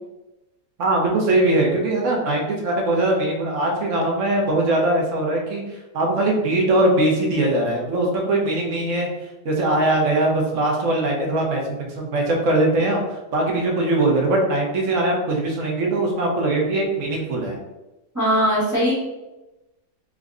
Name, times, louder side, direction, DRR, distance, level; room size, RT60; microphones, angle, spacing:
voice 1, 0.8-9.1 9.4-17.6, right 2 dB, 60° right, 0 dB, 0.9 m, -21 dB
voice 2, 18.1-19.0, equal, 10° right, -8 dB, 1.1 m, -19 dB
3.6 x 2.1 x 3.5 m, 1.0 s
omnidirectional pair, 1.7 m